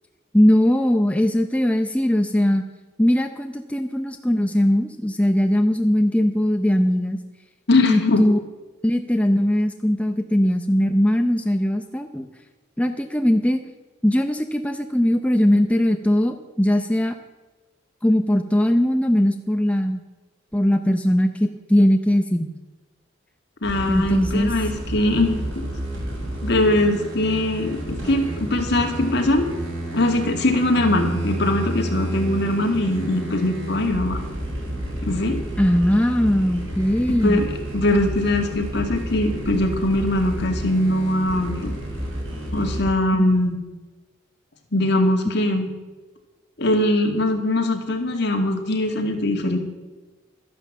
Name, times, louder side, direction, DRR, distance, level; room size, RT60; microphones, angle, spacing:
voice 1, 0.3-2.6 3.0-7.2 7.8-8.4 8.8-12.3 12.8-13.6 14.0-17.1 18.0-20.0 20.5-22.5 23.9-24.5 35.6-37.4 43.1-43.3, equal, 5° left, 5 dB, 0.7 m, -20 dB
voice 2, 7.7-8.3 23.6-25.6 26.4-29.5 29.9-34.2 35.0-35.4 37.2-41.7 42.5-43.6 44.7-45.7 46.6-49.6, left 1 dB, 60° left, 4 dB, 2.2 m, -21 dB
sound 1, 23.6-42.9, right 1 dB, 90° right, 6.7 m, -30 dB
13.0 x 11.0 x 7.4 m, 1.2 s
head